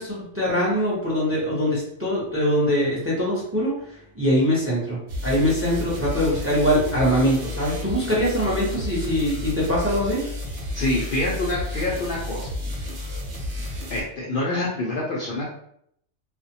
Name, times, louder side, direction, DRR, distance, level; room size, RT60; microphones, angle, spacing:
voice 1, 0.0-3.7 4.1-10.3, equal, 15° right, -6 dB, 0.6 m, -23 dB
sound 1, 5.1-14.0, left 1 dB, 70° right, 1.0 m, -32 dB
voice 2, 10.7-12.5 13.9-15.5, left 2 dB, 60° left, -4 dB, 0.6 m, -26 dB
2.5 x 2.1 x 2.7 m, 0.69 s
omnidirectional pair, 1.2 m